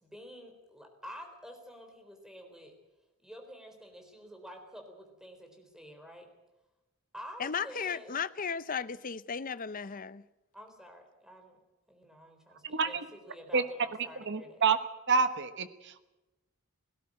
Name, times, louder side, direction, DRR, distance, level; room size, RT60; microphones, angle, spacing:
voice 1, 0.0-2.7 3.2-6.3 7.1-8.1 10.5-11.6 11.9-14.6, equal, 5° right, 4.0 m, -49 dB
voice 2, 7.4-10.2, left 6 dB, 40° left, 0.7 m, -35 dB
voice 3, 12.6-13.0 13.5-13.6 14.3-14.8 15.1-16.0, right 5 dB, 55° right, 1.2 m, -28 dB
17.5 x 17.0 x 8.9 m
head